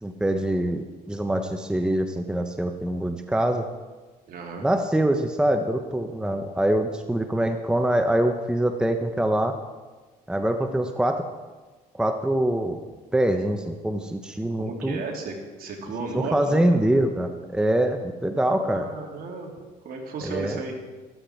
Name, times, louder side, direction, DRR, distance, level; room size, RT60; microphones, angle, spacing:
voice 1, 0.0-3.7 4.6-9.6 10.3-11.3 11.9-12.8 13.1-15.0 16.1-18.9 20.2-20.6, right 1 dB, 5° right, 6 dB, 0.9 m, -24 dB
voice 2, 4.3-4.7 14.6-16.8 18.6-19.5 19.8-20.8, right 4 dB, 60° right, 0 dB, 3.0 m, -34 dB
13.5 x 13.5 x 4.5 m, 1.3 s
cardioid pair, 110°, 17 cm